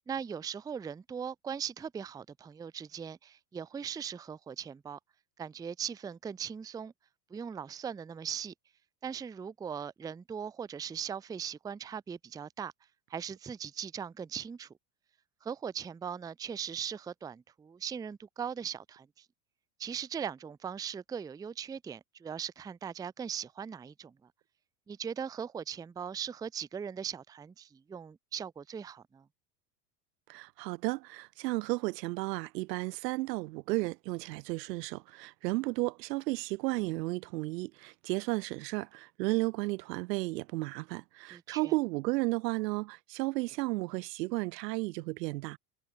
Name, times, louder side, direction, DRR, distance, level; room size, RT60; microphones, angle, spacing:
voice 1, 0.1-5.0 5.4-6.9 7.3-8.5 9.0-12.7 13.1-14.7 15.4-19.2 19.8-24.1 24.9-29.2 41.3-41.7, right 7 dB, 10° right, 0.5 m, -39 dB
voice 2, 30.3-45.6, right 21 dB, 80° right, 0.9 m, -33 dB
supercardioid pair, 120°, 49 cm